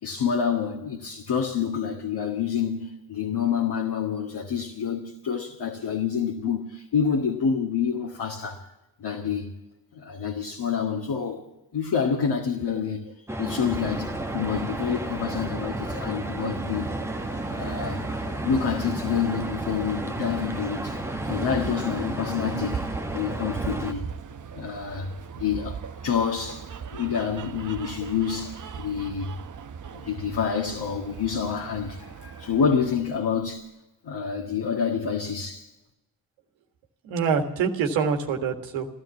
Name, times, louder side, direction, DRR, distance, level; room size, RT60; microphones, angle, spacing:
voice 1, 0.0-8.7 9.0-9.5 9.9-11.4 11.7-13.1 13.4-17.0 17.5-22.9 23.1-24.1 24.5-29.3 29.9-33.7 34.0-35.7, left 7 dB, 60° left, 1.9 m, -28 dB
sound 1, 13.3-23.9, right 1 dB, 5° right, 1.2 m, -32 dB
sound 2, 13.7-33.2, right 6 dB, 45° right, 1.0 m, -39 dB
voice 2, 37.0-38.9, right 6 dB, 85° right, 1.8 m, -26 dB
14.5 x 13.0 x 7.2 m
supercardioid pair, 50°, 44 cm